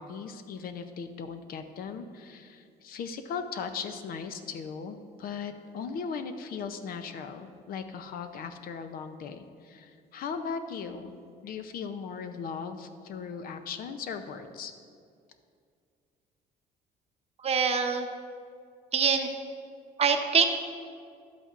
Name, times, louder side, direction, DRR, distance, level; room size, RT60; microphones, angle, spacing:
voice 1, 0.0-11.1 11.4-14.7, left 6 dB, 60° left, 9 dB, 0.6 m, -38 dB
voice 2, 17.4-18.1 18.9-19.3 20.0-20.5, right 6 dB, 35° right, 6 dB, 0.7 m, -24 dB
11.0 x 8.2 x 2.5 m, 2.2 s
cardioid pair, 110°, 17 cm